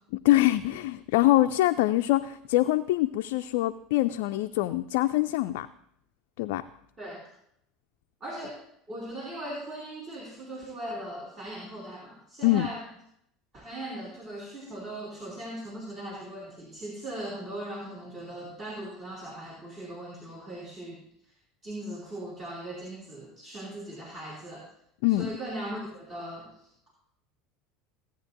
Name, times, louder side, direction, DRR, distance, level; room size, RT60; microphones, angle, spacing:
voice 1, 0.2-5.7 6.4-6.6 12.4-12.7 25.0-25.3, left 16 dB, 65° left, 7 dB, 0.3 m, -24 dB
voice 2, 8.2-8.6 8.9-12.8 13.5-21.0 21.6-24.7 25.1-26.7, right 1 dB, 35° right, -3 dB, 2.9 m, -39 dB
16.0 x 8.8 x 2.6 m, 0.73 s
figure-of-eight pair, 75°, 0 cm